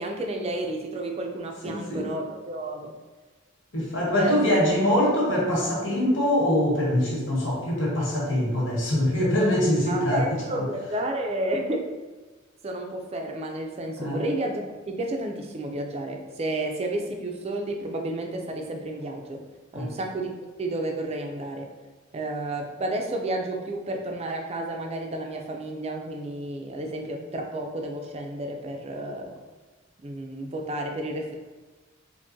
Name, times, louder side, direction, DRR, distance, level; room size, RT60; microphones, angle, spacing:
voice 1, 0.0-2.9 4.1-4.6 9.9-11.9 12.6-19.4 19.7-21.7 22.1-29.3 30.0-31.3, right 1 dB, 30° right, 2 dB, 0.4 m, -31 dB
voice 2, 1.6-2.1 3.7-10.2 10.5-10.6 14.0-14.2 19.7-19.9, left 1 dB, 70° left, -5 dB, 1.2 m, -23 dB
3.7 x 2.6 x 2.6 m, 1.3 s
head